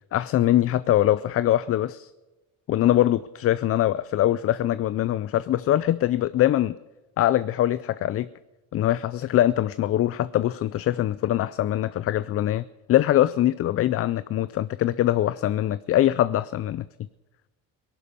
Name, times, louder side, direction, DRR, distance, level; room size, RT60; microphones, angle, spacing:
voice 1, 0.1-2.1 2.7-6.8 7.2-8.3 8.7-12.6 12.9-16.8, left 13 dB, 40° left, 17 dB, 0.4 m, -23 dB
17.5 x 11.5 x 6.9 m, 1.1 s
cardioid pair, 105°, 39 cm